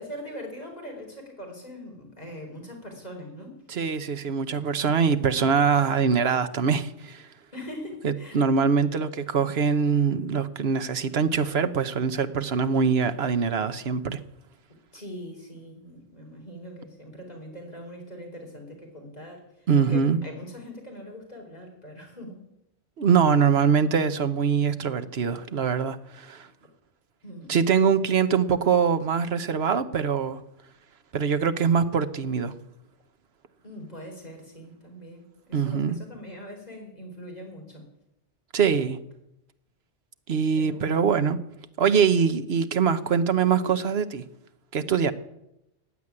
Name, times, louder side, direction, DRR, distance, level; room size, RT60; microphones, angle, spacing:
voice 1, 0.0-3.6 7.5-8.7 14.9-22.4 27.2-27.6 33.6-37.8 40.6-41.0, equal, 35° left, 4.5 m, -42 dB
voice 2, 3.7-7.3 8.0-14.2 19.7-20.2 23.0-26.5 27.5-30.4 31.1-32.5 35.5-36.0 38.5-39.0 40.3-41.4 41.8-44.2 44.7-45.1, right 6 dB, 60° right, 1.2 m, -23 dB
15.5 x 9.2 x 9.8 m
omnidirectional pair, 1.3 m